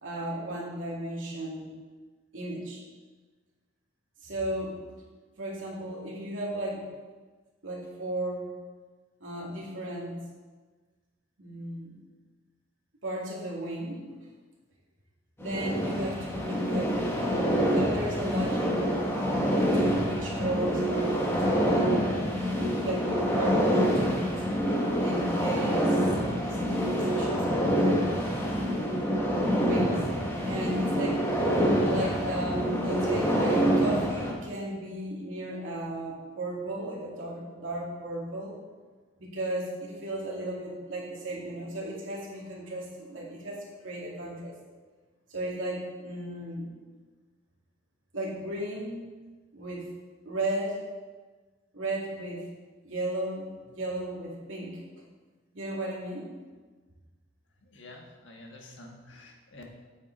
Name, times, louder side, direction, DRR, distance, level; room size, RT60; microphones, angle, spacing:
voice 1, 0.0-1.7 2.3-2.8 4.2-4.8 5.4-6.8 7.6-8.5 9.2-10.2 11.4-12.0 13.0-14.0 15.4-18.8 19.7-22.1 22.7-24.4 25.0-28.0 29.3-30.0 30.5-31.3 31.8-38.6 39.2-44.5 45.3-46.7 48.1-49.0 49.5-49.9 50.2-50.8 51.7-52.4 52.8-54.8 55.5-56.3, right 1 dB, 80° right, -4 dB, 2.5 m, -35 dB
sound 1, 15.4-34.3, equal, 10° left, 1.1 m, -26 dB
voice 2, 57.6-59.6, left 2 dB, 70° left, 0 dB, 1.5 m, -49 dB
9.1 x 7.2 x 4.0 m, 1.4 s
head